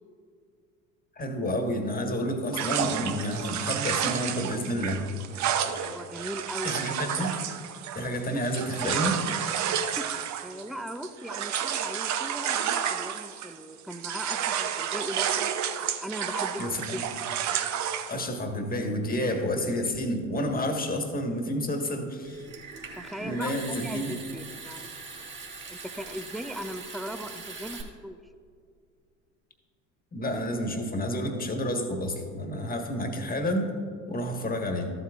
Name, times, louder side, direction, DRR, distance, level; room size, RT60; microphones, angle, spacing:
voice 1, 1.2-5.1 6.6-7.3 7.9-9.2 16.6-17.0 18.1-22.5 23.2-24.1 30.1-33.7 34.1-34.9, equal, 20° left, 4 dB, 1.6 m, -30 dB
sound 1, 2.5-13.6 13.9-18.2, right 9 dB, 45° right, 0.8 m, -30 dB
voice 2, 5.8-6.9 9.7-15.5 16.0-17.0 23.0-25.0 25.6-28.2, equal, ahead, 9 dB, 0.5 m, -39 dB
Water tap faucet / Sink (filling or washing) / Trickle dribble, 22.2-27.8, right 4 dB, 30° right, 2.3 m, -42 dB
13.5 x 8.0 x 2.5 m, 2.2 s
hypercardioid pair, 70°, 39 cm